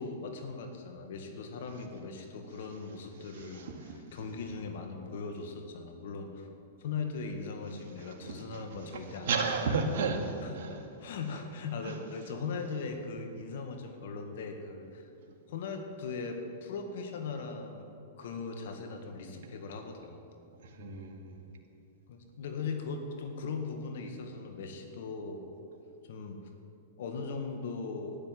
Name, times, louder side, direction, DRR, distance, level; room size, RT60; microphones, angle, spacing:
voice 1, 0.0-6.5 6.8-9.8 10.4-15.1 15.5-17.9 18.2-20.2 22.1-25.5 26.1-26.4 27.0-28.2, left 4 dB, 65° left, 5 dB, 1.7 m, -39 dB
voice 2, 3.3-3.7 8.0-8.6 9.3-10.8 11.8-11.9 20.8-21.4, right 4 dB, 65° right, 2 dB, 2.0 m, -33 dB
12.0 x 10.5 x 7.6 m, 2.6 s
hypercardioid pair, 115°, 0 cm